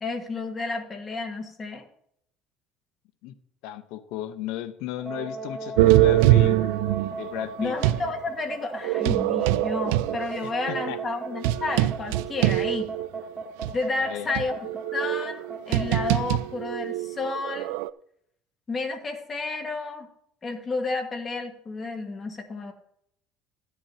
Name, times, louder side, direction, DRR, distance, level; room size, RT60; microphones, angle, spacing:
voice 1, 0.0-1.8 7.6-12.9 13.7-17.7 18.7-20.1 20.4-22.7, left 3 dB, 25° left, 4 dB, 1.8 m, -31 dB
voice 2, 3.6-6.6 7.2-7.8 10.7-11.0 14.0-14.3, left 12 dB, 70° left, 10 dB, 1.0 m, -34 dB
sound 1, 5.0-15.9, right 3 dB, 15° right, 2.1 m, -36 dB
sound 2, 5.8-8.1 8.8-13.2 13.6-13.7 14.3-17.9, right 16 dB, 85° right, 0.3 m, -23 dB
14.0 x 9.9 x 2.9 m, 0.70 s
cardioid pair, 140°, 0 cm